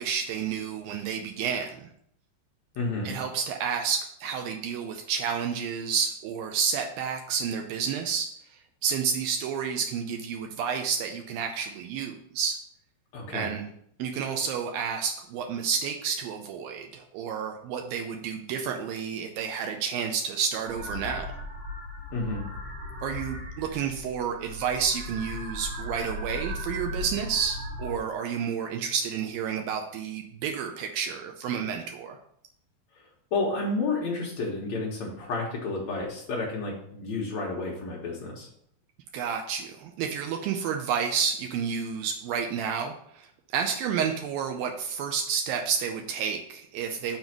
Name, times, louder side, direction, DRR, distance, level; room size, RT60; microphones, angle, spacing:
voice 1, 0.0-1.9 3.0-8.3 8.8-12.6 13.3-13.6 14.0-21.3 23.0-32.2 39.1-43.3 43.5-47.2, right 7 dB, 90° right, 4 dB, 2.0 m, -30 dB
voice 2, 2.8-3.1 13.1-13.5 22.1-22.4 33.3-38.5, left 3 dB, 65° left, -3 dB, 1.7 m, -31 dB
sound 1, 20.6-28.0, left 1 dB, 65° right, 3.2 m, -37 dB
6.9 x 4.0 x 5.9 m, 0.68 s
omnidirectional pair, 4.9 m